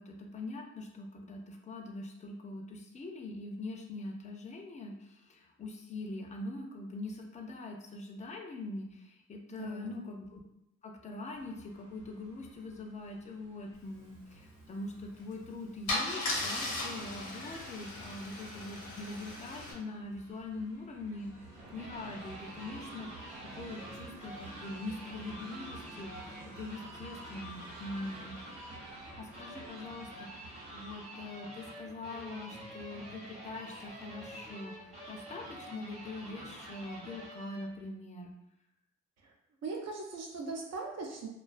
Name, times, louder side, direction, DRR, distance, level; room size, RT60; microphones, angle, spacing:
voice 1, 0.0-10.4 10.8-28.4 29.1-38.3, left 2 dB, 25° left, 2 dB, 0.4 m, -43 dB
voice 2, 9.6-10.0 39.2-39.3 39.6-41.3, right 4 dB, 60° right, 1 dB, 0.5 m, -40 dB
sound 1, 11.3-30.9, right 2 dB, 90° right, 0.8 m, -52 dB
Car / Engine starting / Idling, 15.2-15.3 15.9-19.7, left 2 dB, 85° left, 0.8 m, -37 dB
sound 2, 21.3-37.8, right 1 dB, 20° right, 0.8 m, -48 dB
2.3 x 2.2 x 2.4 m, 0.84 s
cardioid pair, 90°, 30 cm